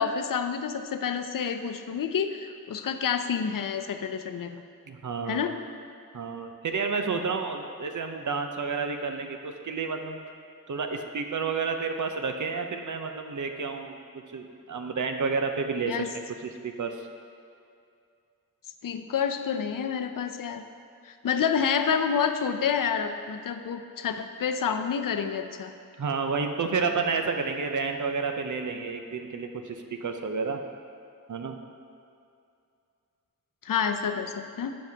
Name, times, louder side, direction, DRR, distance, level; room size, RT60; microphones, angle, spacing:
voice 1, 0.0-4.6 5.3-5.6 15.8-16.1 18.8-20.6 21.1-25.7 33.6-34.8, left 7 dB, 65° left, 8 dB, 0.5 m, -28 dB
voice 2, 4.9-5.5 6.1-10.2 10.7-14.0 14.3-16.1 16.4-17.0 26.0-30.6 31.3-31.6, right 4 dB, 60° right, 5 dB, 0.6 m, -30 dB
9.3 x 7.0 x 2.8 m, 2.5 s
wide cardioid pair, 80°, 35 cm